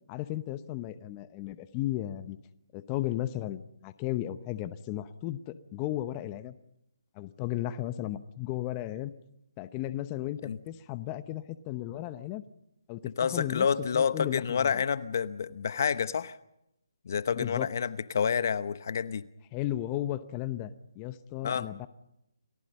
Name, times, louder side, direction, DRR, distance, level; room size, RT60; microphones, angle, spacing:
voice 1, 0.1-2.4 2.7-6.5 7.1-9.1 9.6-12.4 12.9-13.7 13.9-14.8 17.3-17.7 19.5-21.9, left 14 dB, 20° left, 13 dB, 0.9 m, -35 dB
voice 2, 13.2-16.4 17.0-19.2 21.4-21.7, left 6 dB, 50° left, 15 dB, 1.0 m, -28 dB
29.5 x 19.0 x 5.5 m, 0.82 s
figure-of-eight pair, 155°, 2 cm